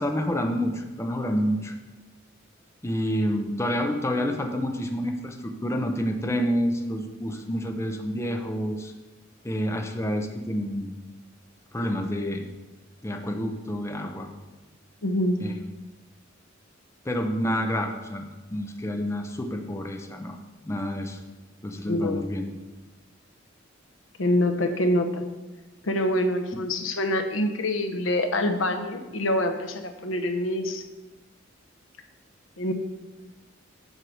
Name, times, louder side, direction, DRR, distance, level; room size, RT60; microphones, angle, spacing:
voice 1, 0.0-1.7 2.8-5.4 5.6-8.9 9.4-10.9 11.7-12.4 13.0-14.3 15.4-15.5 17.0-20.4 20.7-21.2 21.6-22.4, equal, 15° left, 4 dB, 0.6 m, -28 dB
voice 2, 15.0-15.4 21.9-22.2 24.2-25.2 25.8-30.8 32.6-32.7, left 1 dB, 75° left, 7 dB, 0.8 m, -25 dB
7.6 x 4.7 x 6.2 m, 1.1 s
head